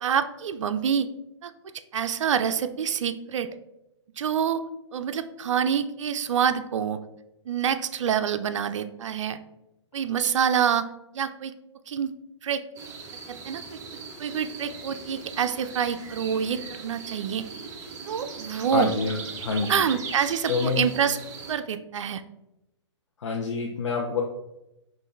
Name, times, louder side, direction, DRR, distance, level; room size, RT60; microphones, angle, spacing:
voice 1, 0.0-1.1 1.4-1.5 1.9-3.5 4.2-4.6 4.9-7.0 7.5-9.4 9.9-10.9 11.1-11.5 11.9-12.1 12.4-12.6 13.3-13.8 14.2-17.4 18.1-18.9 19.7-21.2 21.5-22.2, right 8 dB, 75° right, 9 dB, 0.4 m, -26 dB
sound 1, 12.8-21.6, right 5 dB, 20° right, 0.7 m, -40 dB
voice 2, 18.7-19.8 20.5-20.9 23.2-24.2, left 4 dB, 75° left, 0 dB, 0.7 m, -27 dB
5.5 x 2.5 x 3.1 m, 0.89 s
hypercardioid pair, 140°, 16 cm